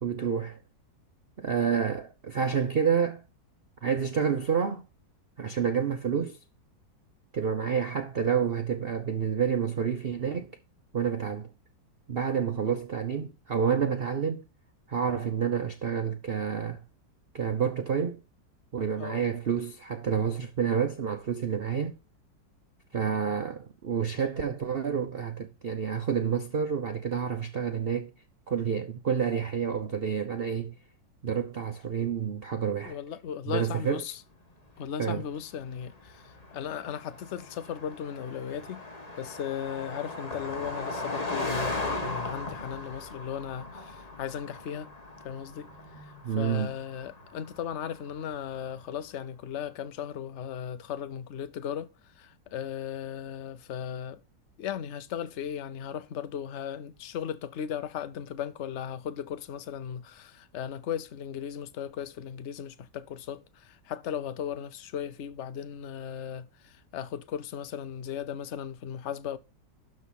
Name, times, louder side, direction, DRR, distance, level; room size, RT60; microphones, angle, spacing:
voice 1, 0.0-0.6 1.4-3.2 3.8-4.9 5.4-6.4 7.3-10.6 10.9-11.5 12.1-14.4 14.9-16.8 17.3-18.2 18.7-21.9 22.9-28.1 28.5-30.7 31.2-33.0 33.5-34.0 35.0-35.2 46.2-46.7, right 7 dB, 55° right, 0.6 m, -29 dB
voice 2, 18.9-19.3 23.1-23.3 32.8-34.2 34.8-38.8 39.2-44.9 45.2-45.7 46.0-46.1 46.4-54.2 54.6-69.4, left 9 dB, 55° left, 0.8 m, -37 dB
Car passing by, 35.0-48.7, left 2 dB, 20° left, 1.7 m, -38 dB
12.5 x 5.0 x 5.7 m
omnidirectional pair, 2.0 m